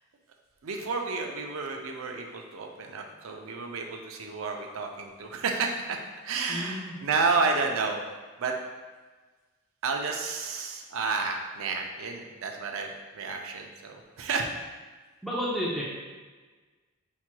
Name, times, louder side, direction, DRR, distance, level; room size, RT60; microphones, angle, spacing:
voice 1, 0.6-6.0 6.2-8.0 8.4-8.6 9.8-14.5, right 4 dB, 75° right, 2 dB, 0.5 m, -31 dB
voice 2, 6.5-6.9 15.2-15.8, equal, ahead, -7 dB, 0.6 m, -31 dB
5.6 x 3.0 x 2.2 m, 1.3 s
head